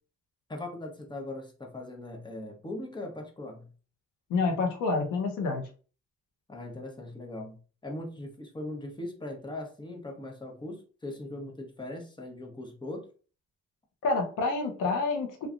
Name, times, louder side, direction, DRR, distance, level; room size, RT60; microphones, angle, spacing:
voice 1, 0.5-3.7 6.5-13.1, left 1 dB, 15° left, 1 dB, 1.0 m, -40 dB
voice 2, 4.3-5.6 14.0-15.5, left 3 dB, 90° left, 3 dB, 0.8 m, -28 dB
3.2 x 2.3 x 2.5 m, 0.38 s
cardioid pair, 90°, 30 cm